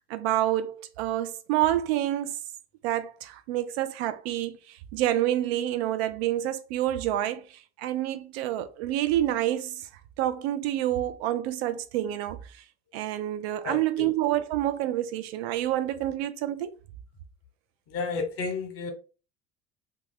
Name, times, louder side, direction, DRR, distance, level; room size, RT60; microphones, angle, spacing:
voice 1, 0.0-2.3 2.8-9.9 10.2-12.6 12.9-16.7, right 13 dB, 70° right, 0.5 m, -28 dB
voice 2, 13.6-14.1 17.9-18.9, left 4 dB, 45° left, 0.9 m, -32 dB
2.4 x 2.3 x 3.3 m
hypercardioid pair, 70°, 32 cm